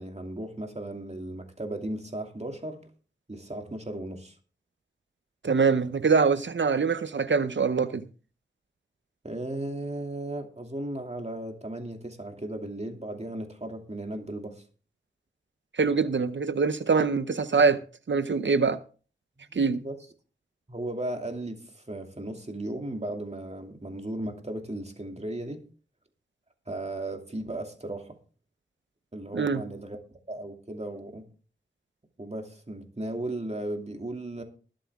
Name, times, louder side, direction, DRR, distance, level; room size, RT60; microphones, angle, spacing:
voice 1, 0.0-2.8 3.3-4.4 9.2-14.6 19.5-20.0 20.7-25.6 26.7-28.2 29.1-31.3 32.2-34.4, right 1 dB, 35° right, 2.6 m, -36 dB
voice 2, 5.4-8.0 15.7-17.8 18.1-18.8 19.5-19.8 29.3-29.6, right 5 dB, 70° right, 0.7 m, -24 dB
20.5 x 7.7 x 3.6 m
wide cardioid pair, 75°, 20 cm